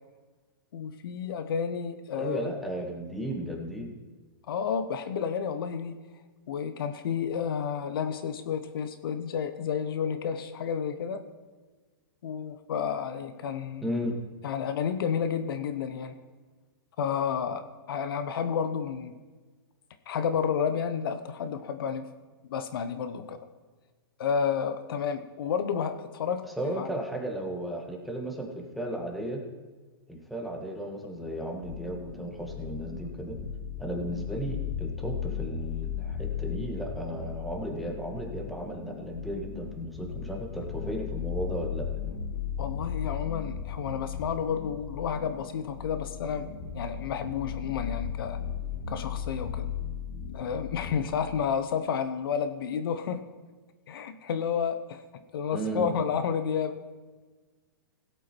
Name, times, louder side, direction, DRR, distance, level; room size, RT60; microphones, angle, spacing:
voice 1, 0.7-2.5 4.5-6.0 6.5-11.2 12.2-13.9 14.4-16.2 17.0-19.1 20.1-22.1 22.5-23.4 24.2-26.9 42.6-46.5 46.7-48.4 48.9-49.7 50.3-53.2 53.9-55.0 55.3-56.8, left 7 dB, 70° left, 10 dB, 1.0 m, -31 dB
voice 2, 2.1-3.9 13.8-14.2 26.6-29.4 30.1-33.4 33.8-41.9 55.5-55.9, right 1 dB, ahead, 1 dB, 1.7 m, -34 dB
sound 1, 31.6-51.4, left 8 dB, 45° left, 2.5 m, -36 dB
17.0 x 8.3 x 4.6 m, 1.3 s
hypercardioid pair, 135°, 13 cm